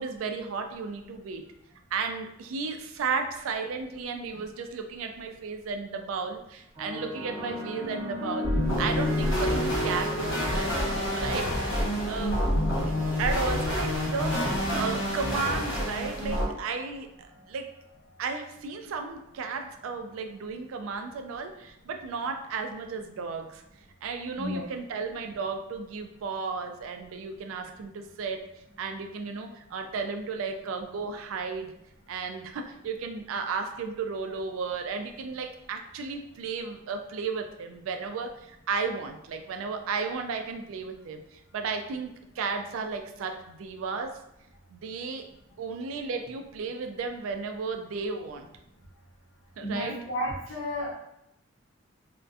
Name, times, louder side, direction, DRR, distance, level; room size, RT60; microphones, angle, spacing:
voice 1, 0.0-1.5 1.9-8.5 8.8-10.7 11.2-12.4 13.2-17.7 18.2-23.6 24.0-28.4 28.8-31.7 32.1-42.1 42.4-44.2 44.7-45.3 45.6-48.5 49.6-50.0, right 4 dB, 80° right, 5 dB, 0.3 m, -34 dB
sound 1, 6.8-15.3 16.2-16.6, equal, 25° right, 0.5 m, -36 dB
sound 2, 8.4-16.4, equal, 60° left, 1.0 m, -28 dB
voice 2, 49.6-50.9, left 1 dB, 85° left, -9 dB, 0.7 m, -32 dB
2.5 x 2.1 x 2.3 m, 0.80 s
head